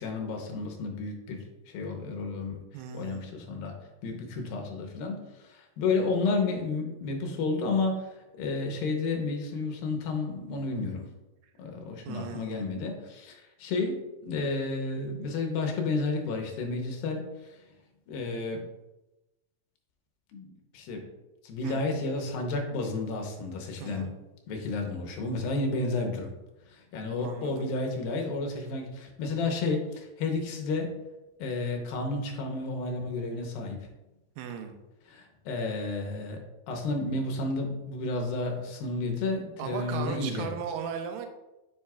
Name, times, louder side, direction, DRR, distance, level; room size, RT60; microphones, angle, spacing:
voice 1, 0.0-2.6 2.9-3.7 4.0-11.1 11.6-17.6 18.1-18.6 20.3-21.0 21.4-24.1 24.5-26.3 26.7-30.9 31.4-33.8 35.1-36.4 36.7-40.5, left 3 dB, 85° left, 2 dB, 2.7 m, -31 dB
voice 2, 2.7-3.3 12.1-12.6 21.6-21.8 23.8-24.2 27.2-27.7 34.4-34.8 39.6-41.3, right 7 dB, 90° right, 6 dB, 2.4 m, -37 dB
7.6 x 5.5 x 2.3 m, 1.0 s
omnidirectional pair, 4.1 m